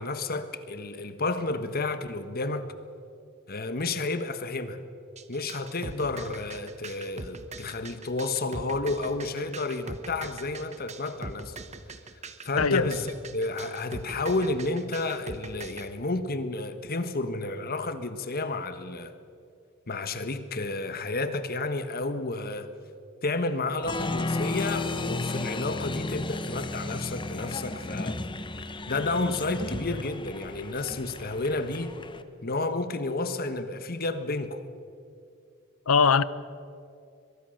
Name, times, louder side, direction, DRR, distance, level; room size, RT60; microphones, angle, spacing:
voice 1, 0.0-2.7 3.5-4.8 5.3-11.6 12.4-19.1 19.9-22.7 23.2-28.2 28.9-31.9 32.4-34.6, left 3 dB, 45° left, 1.3 m, -31 dB
sound 1, 5.2-15.9, right 3 dB, 30° right, 1.2 m, -41 dB
voice 2, 12.6-12.9 35.9-36.2, left 5 dB, 75° left, 0.7 m, -20 dB
Applause, 23.8-32.2, left 2 dB, 25° left, 1.0 m, -33 dB
23.0 x 21.5 x 6.5 m
head